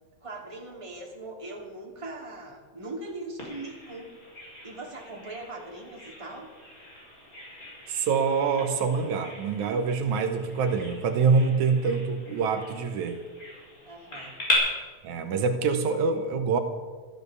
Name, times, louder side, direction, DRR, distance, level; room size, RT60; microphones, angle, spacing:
voice 1, 0.2-4.2 4.6-6.5 13.8-14.4, right 2 dB, 10° right, -1 dB, 2.6 m, -40 dB
Bird vocalization bird call bird song, 3.4-14.5, left 2 dB, 25° left, 5.6 m, -39 dB
voice 2, 7.9-13.2 15.0-16.6, right 5 dB, 80° right, 6 dB, 2.5 m, -25 dB
14.0 x 13.0 x 6.9 m, 1.4 s
omnidirectional pair, 3.4 m